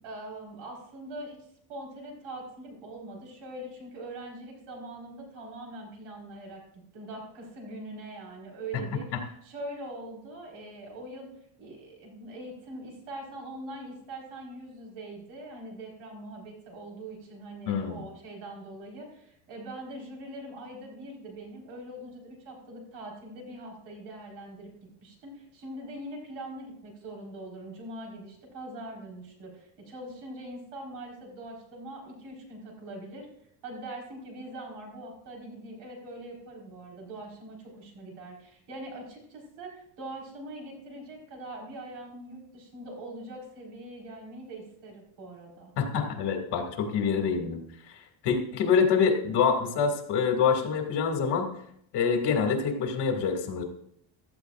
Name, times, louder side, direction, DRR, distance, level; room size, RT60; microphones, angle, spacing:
voice 1, 0.0-9.2 9.4-11.3 11.6-24.7 25.0-33.3 33.6-45.7, right 1 dB, 75° right, 0 dB, 4.6 m, -42 dB
voice 2, 17.7-18.0 45.8-47.6 47.9-48.0 48.2-51.5 51.9-53.6, left 6 dB, 55° left, 3 dB, 2.4 m, -26 dB
15.5 x 13.0 x 2.5 m, 0.70 s
cardioid pair, 160°, 48 cm